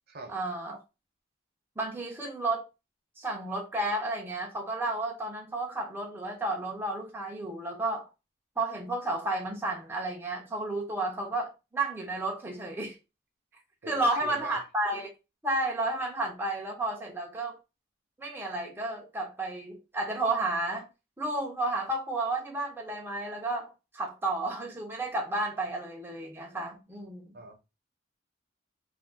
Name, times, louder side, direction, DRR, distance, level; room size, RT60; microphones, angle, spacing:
voice 1, 0.3-0.8 1.8-2.7 3.2-8.1 8.6-13.0 13.8-15.1 15.4-17.6 18.2-20.8 21.2-27.3, right 2 dB, 10° right, 0.5 m, -32 dB
voice 2, 13.8-14.6 27.3-27.5, right 2 dB, 50° right, 0.7 m, -43 dB
2.6 x 2.4 x 3.8 m
head